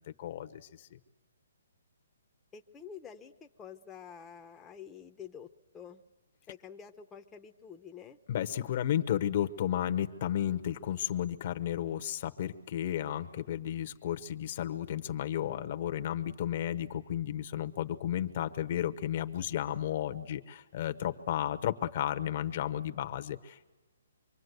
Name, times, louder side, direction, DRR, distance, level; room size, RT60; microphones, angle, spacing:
voice 1, 0.2-1.0 8.3-23.7, left 11 dB, 40° left, 9 dB, 1.0 m, -33 dB
voice 2, 2.5-6.0 6.5-8.2, left 7 dB, 10° left, 4 dB, 0.8 m, -48 dB
25.5 x 24.0 x 8.1 m, 1.2 s
hypercardioid pair, 165°, 0 cm